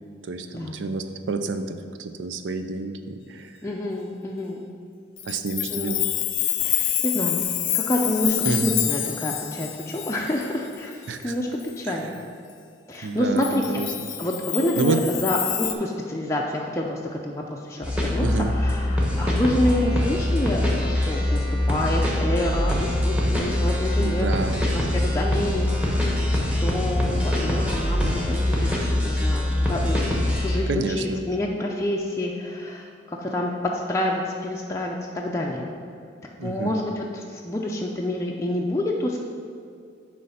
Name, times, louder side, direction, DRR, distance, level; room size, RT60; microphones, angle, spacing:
voice 1, 0.2-3.5 5.2-6.0 8.4-8.7 11.1-11.3 11.9-12.2 13.0-14.1 14.7-15.0 18.2-18.5 24.0-24.7 30.7-31.2 36.4-36.8, right 3 dB, 70° right, 9 dB, 0.5 m, -29 dB
voice 2, 3.6-4.7 5.7-6.0 6.6-7.4 7.7-12.1 12.9-13.8 14.2-18.3 18.5-28.7 29.0-33.5 33.9-35.6 36.4-39.2, left 1 dB, 15° left, -2 dB, 0.5 m, -28 dB
Chime, 5.2-11.3 11.7-11.8 13.4-15.7, left 13 dB, 75° left, 0.5 m, -27 dB
sound 1, 17.8-30.6, left 1 dB, 5° right, 1.1 m, -23 dB
9.5 x 3.2 x 5.7 m, 2.3 s
head